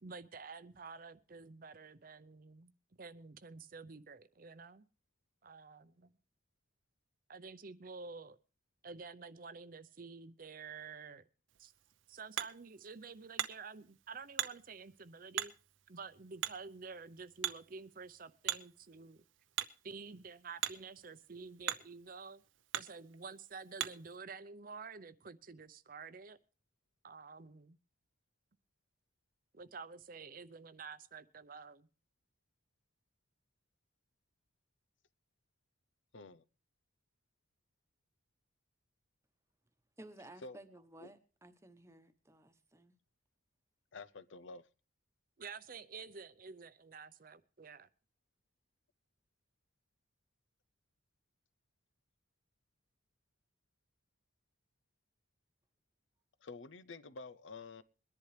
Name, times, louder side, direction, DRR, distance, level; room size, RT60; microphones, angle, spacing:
voice 1, 0.0-4.8 5.4-6.1 7.3-8.4 8.8-11.2 11.6-11.7 12.1-15.5 15.9-19.2 19.8-22.4 22.7-26.4 27.0-27.8 29.5-31.9 45.4-47.9, right 4 dB, 45° right, 0.7 m, -50 dB
Hammer, 11.5-24.2, right 11 dB, 85° right, 0.7 m, -44 dB
voice 2, 36.1-36.4 40.4-40.6 41.0-41.1 43.9-44.7 56.4-57.8, left 3 dB, 80° left, 0.7 m, -49 dB
voice 3, 40.0-43.0, right 1 dB, 15° right, 1.0 m, -56 dB
22.0 x 10.5 x 3.3 m
head